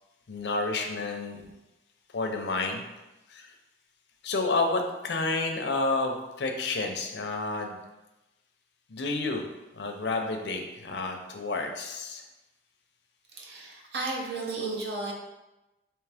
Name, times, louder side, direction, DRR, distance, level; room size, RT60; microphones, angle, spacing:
voice 1, 0.3-1.5 2.1-2.8 3.3-3.5 4.2-7.8 8.9-9.4 9.7-12.2, left 3 dB, 70° left, 3 dB, 0.5 m, -30 dB
voice 2, 13.3-15.1, right 3 dB, 65° right, 0 dB, 0.8 m, -33 dB
3.6 x 3.1 x 3.4 m, 1.0 s
head